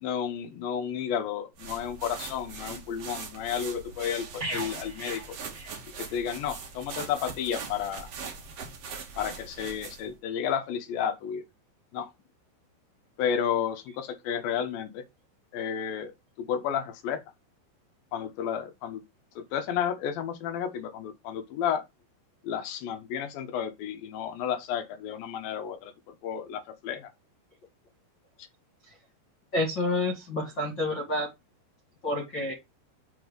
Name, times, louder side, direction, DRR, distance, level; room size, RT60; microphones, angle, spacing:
voice 1, 0.0-5.2 6.1-8.1 9.2-11.4 11.9-12.1 13.2-15.0 15.5-16.1 16.4-17.2 18.1-19.0 19.4-21.8 22.4-27.1, left 8 dB, 70° left, 2.3 m, -32 dB
sound 1, 1.6-10.1, right 5 dB, 80° right, 1.4 m, -41 dB
sound 2, 4.4-6.3 6.6-6.8, right 2 dB, 25° right, 1.5 m, -39 dB
voice 2, 29.5-31.3 32.0-32.5, left 2 dB, 35° left, 1.9 m, -29 dB
8.4 x 4.0 x 5.3 m
omnidirectional pair, 5.6 m